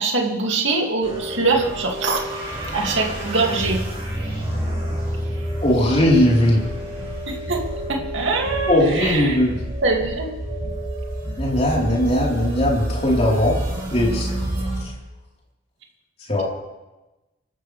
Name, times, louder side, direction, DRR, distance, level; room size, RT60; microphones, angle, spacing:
voice 1, 0.0-2.2 2.7-3.8 7.3-9.4 9.8-10.3, right 3 dB, 70° right, 1 dB, 2.5 m, -23 dB
sound 1, 1.0-14.8, right 1 dB, 30° right, 6.0 m, -28 dB
voice 2, 5.6-6.6 8.7-9.6 11.4-13.5 13.9-14.3 14.8-14.9 16.3-16.4, left 1 dB, 30° left, -4 dB, 4.1 m, -19 dB
26.5 x 13.5 x 3.4 m, 1.1 s
head